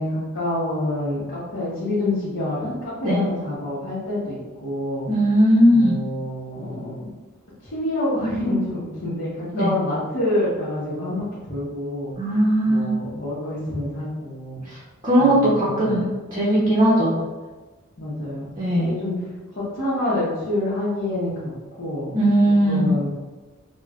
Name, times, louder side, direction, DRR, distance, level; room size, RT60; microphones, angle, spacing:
voice 1, 0.0-5.1 5.7-7.1 7.6-12.1 12.6-14.6 15.2-16.0 18.0-18.5 18.7-21.5 21.8-22.2 22.6-23.1, left 1 dB, 55° left, -10 dB, 1.0 m, -27 dB
voice 2, 5.1-5.9 9.5-9.7 12.2-12.9 14.7-14.8 15.0-17.2 18.6-18.9 22.1-23.0, equal, 20° right, -7 dB, 0.7 m, -18 dB
5.1 x 2.1 x 2.4 m, 1.3 s
head